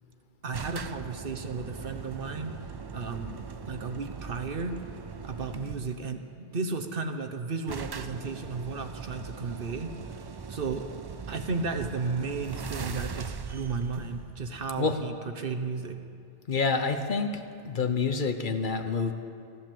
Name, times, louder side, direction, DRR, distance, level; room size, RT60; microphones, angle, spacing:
voice 1, 0.4-2.6 2.9-3.4 3.6-4.8 5.2-9.9 10.5-10.8 11.3-16.0, right 4 dB, 60° right, 6 dB, 1.1 m, -34 dB
sound 1, 0.5-6.1 7.1-7.2 7.3-7.4 7.7-15.2, right 5 dB, 40° right, 0.3 m, -40 dB
voice 2, 16.5-17.4 17.6-19.1, left 4 dB, 55° left, 7 dB, 1.0 m, -27 dB
13.5 x 12.0 x 7.6 m, 2.4 s
omnidirectional pair, 1.0 m